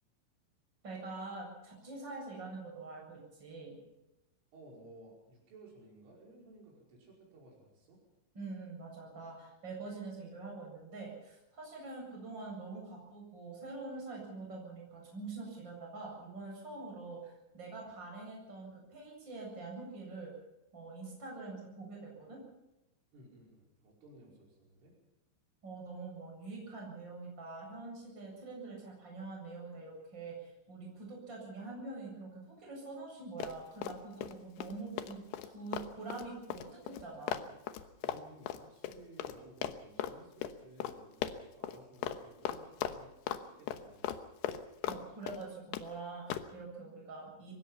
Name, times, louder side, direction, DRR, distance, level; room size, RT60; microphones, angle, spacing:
voice 1, 0.8-3.8 8.3-20.3 20.7-22.4 25.6-37.4 44.8-47.5, right 3 dB, 20° right, -1 dB, 8.2 m, -45 dB
voice 2, 4.5-8.0 23.1-25.0 38.0-44.1, right 2 dB, 70° right, -2 dB, 7.8 m, -57 dB
Run, 33.4-34.3 34.6-39.4 39.6-40.1 40.4-40.5 40.8-40.9 41.2-41.8 42.0-42.2 42.4-43.4 43.7-45.0 45.3-45.9 46.3-46.5, left 10 dB, 75° left, 2.7 m, -38 dB
24.0 x 20.0 x 5.7 m, 0.93 s
omnidirectional pair, 5.9 m